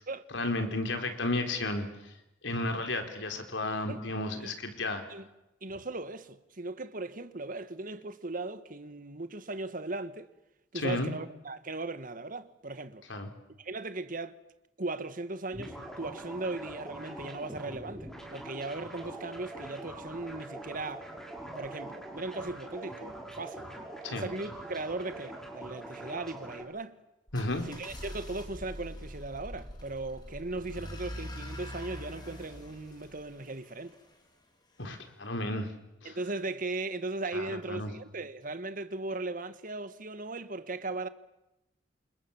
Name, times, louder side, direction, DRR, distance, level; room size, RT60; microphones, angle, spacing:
voice 1, 0.3-1.9 2.4-5.0 10.7-11.1 13.1-13.3 24.0-24.3 27.3-27.6 34.8-35.7 36.0-36.1 37.3-37.9, left 2 dB, 80° left, 4.2 m, -32 dB
voice 2, 5.6-10.3 10.7-13.0 13.6-14.4 14.8-21.1 21.5-23.7 24.1-27.0 27.7-34.0 36.0-41.1, right 2 dB, 45° right, 1.7 m, -38 dB
sound 1, 15.5-26.6, right 1 dB, 5° left, 6.0 m, -43 dB
sound 2, 27.3-34.2, equal, 25° left, 4.5 m, -44 dB
28.5 x 28.0 x 7.3 m
head